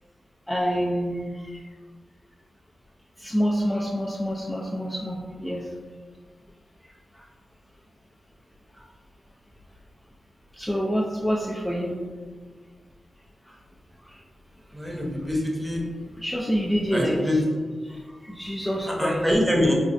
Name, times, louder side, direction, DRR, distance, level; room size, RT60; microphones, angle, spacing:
voice 1, 0.5-1.6 3.2-5.7 7.1-7.2 8.7-8.8 10.5-12.0 13.5-13.6 14.0-14.2 16.2-17.4 17.8-19.4, equal, 10° left, -4 dB, 0.4 m, -27 dB
voice 2, 14.7-15.8 16.9-17.3 19.0-19.8, equal, 15° right, -2 dB, 0.8 m, -24 dB
4.1 x 2.4 x 2.5 m, 1.5 s
cardioid pair, 60°, 0 cm